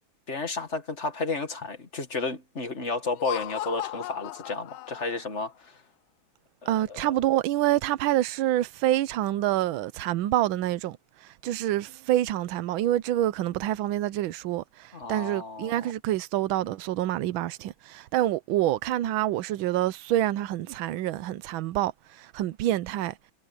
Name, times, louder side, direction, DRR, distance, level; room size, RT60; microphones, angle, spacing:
voice 1, 0.3-5.8 6.6-7.0 14.9-15.8, left 3 dB, 35° left, 2.1 m, -32 dB
Laughter, 3.1-5.4, left 14 dB, 85° left, 1.4 m, -37 dB
voice 2, 6.7-11.0 11.2-23.1, right 14 dB, 80° right, 1.5 m, -27 dB
omnidirectional pair, 2.2 m